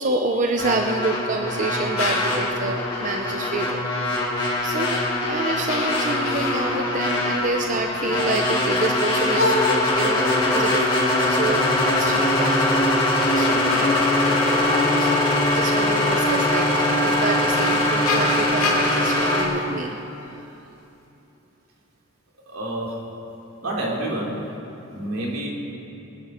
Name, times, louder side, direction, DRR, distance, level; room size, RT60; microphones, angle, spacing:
voice 1, 0.0-3.8 4.6-11.0 11.3-12.8 13.3-15.2 15.5-20.0, right 3 dB, 35° right, 3 dB, 0.6 m, -28 dB
sound 1, 0.6-19.4, left 1 dB, 20° left, 2.4 m, -22 dB
sound 2, 2.0-2.5 4.6-4.7 5.3-5.4 5.7-7.0 9.3-11.0 12.9-15.6 17.0-17.1 17.5-20.4, left 3 dB, 80° left, 2.8 m, -28 dB
voice 2, 22.5-23.1 23.6-24.4 24.9-25.5, right 1 dB, 85° right, -3 dB, 3.4 m, -28 dB
24.0 x 10.0 x 4.4 m, 3.0 s
head